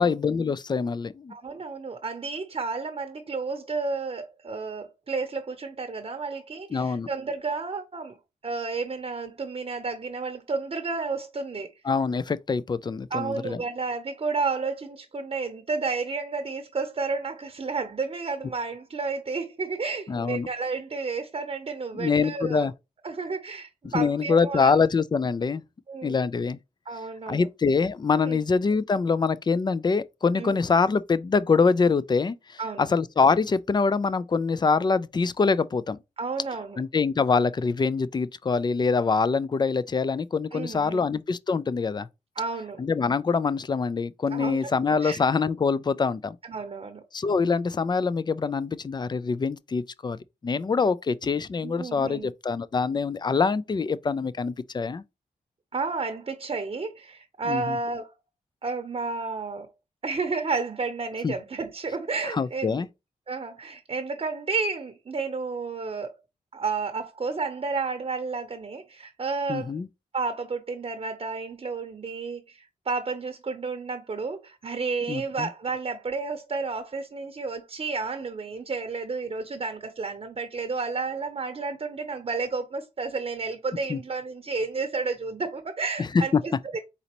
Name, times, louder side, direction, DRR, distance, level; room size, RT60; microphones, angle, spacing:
voice 1, 0.0-1.3 6.7-7.1 11.8-13.6 20.1-20.5 21.9-22.7 23.8-25.6 26.0-26.6 27.3-36.0 36.8-42.1 42.8-46.4 47.1-55.0 57.5-57.8 61.2-61.3 62.3-62.9 69.5-69.9 75.1-75.5 83.9-84.0 86.0-86.1 86.3-86.4, left 5 dB, 30° left, 0.4 m, -24 dB
voice 2, 1.3-8.2 8.4-11.7 13.1-22.7 23.0-24.7 25.9-26.2 26.9-27.5 28.2-28.4 30.4-30.6 32.6-32.9 36.2-36.8 40.5-41.0 42.4-42.8 44.3-44.7 45.0-45.2 46.4-47.0 51.6-52.3 55.7-58.1 58.6-59.7 60.0-62.8 63.3-66.1 66.5-69.7 70.1-86.8, right 4 dB, 40° right, 0.8 m, -31 dB
4.1 x 4.0 x 2.9 m
cardioid pair, 55°, 15 cm